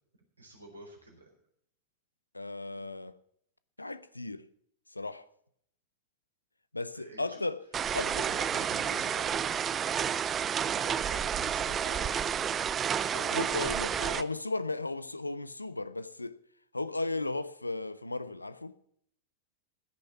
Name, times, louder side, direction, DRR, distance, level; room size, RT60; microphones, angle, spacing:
voice 1, 0.4-1.3 6.9-7.4 7.9-9.6 10.7-12.3, right 2 dB, 80° right, 4.0 m, -47 dB
voice 2, 2.3-3.2 3.8-4.4 4.9-5.3 6.7-7.7 7.9-8.2 13.1-16.4 16.7-18.7, left 2 dB, 85° left, 0.6 m, -35 dB
sound 1, 7.7-14.2, right 8 dB, 25° right, 0.5 m, -30 dB
15.5 x 6.7 x 8.0 m
figure-of-eight pair, 90°, 0 cm